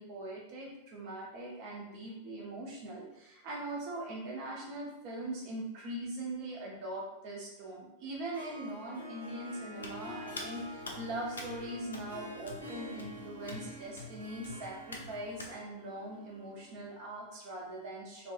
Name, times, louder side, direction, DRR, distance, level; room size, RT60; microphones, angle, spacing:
voice 1, 0.0-18.3, right 1 dB, 45° right, -3 dB, 0.8 m, -41 dB
Harp, 8.1-17.1, equal, 85° right, 0.7 m, -48 dB
Hands, 9.8-15.5, left 2 dB, 70° left, 0.4 m, -47 dB
2.5 x 2.4 x 2.4 m, 0.90 s
figure-of-eight pair, 90°, 0 cm